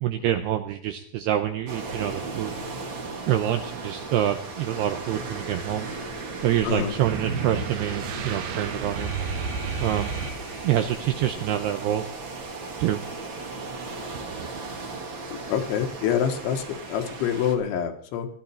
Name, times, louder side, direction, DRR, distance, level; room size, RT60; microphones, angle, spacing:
voice 1, 0.0-2.5 3.3-5.9 6.4-9.1 9.8-10.1 10.6-12.0 12.8-13.0, right 11 dB, 85° right, 8 dB, 2.4 m, -26 dB
sound 1, 1.7-17.5, right 3 dB, 45° right, 1.6 m, -36 dB
sound 2, 7.0-10.9, right 5 dB, 65° right, 2.6 m, -32 dB
voice 2, 15.5-18.3, left 8 dB, 75° left, 5 dB, 3.7 m, -26 dB
19.5 x 12.5 x 4.3 m, 0.63 s
omnidirectional pair, 5.7 m